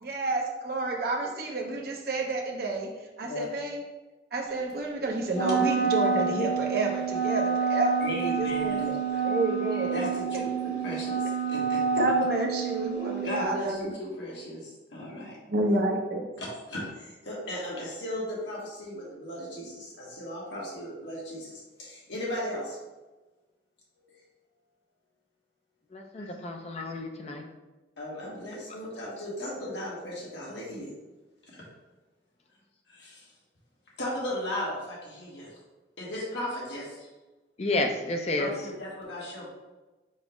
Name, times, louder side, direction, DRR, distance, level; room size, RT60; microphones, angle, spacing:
voice 1, 0.0-2.9 3.2-3.8 4.3-7.9 8.2-9.0 9.2-10.0 12.0-13.9 15.5-16.2, right 2 dB, 55° right, 0 dB, 0.7 m, -29 dB
Wind instrument woodwind instrument, 5.3-13.4, right 5 dB, 60° left, 1.3 m, -28 dB
voice 2, 8.0-9.0 9.9-11.8 13.2-15.4 16.4-22.8 26.2-26.3 28.0-30.9 31.5-31.6 32.9-33.3 34.0-35.5 36.0-37.1 38.4-39.5, left 1 dB, 80° left, -5 dB, 1.2 m, -36 dB
voice 3, 25.9-27.5 37.6-38.6, left 2 dB, 35° left, 3 dB, 0.5 m, -30 dB
5.3 x 2.0 x 4.8 m, 1.2 s
head